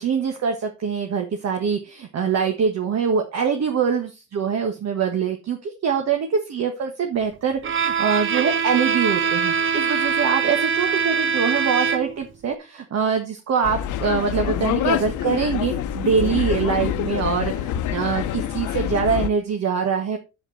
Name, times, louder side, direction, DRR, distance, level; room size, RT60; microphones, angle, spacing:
voice 1, 0.0-20.2, right 6 dB, 60° right, 4 dB, 1.5 m, -24 dB
Bowed string instrument, 7.6-12.3, right 6 dB, 40° right, 0.9 m, -23 dB
sound 1, 13.6-19.3, left 10 dB, 85° left, 0.8 m, -26 dB
8.1 x 7.9 x 4.3 m, 0.28 s
cardioid pair, 90°, 30 cm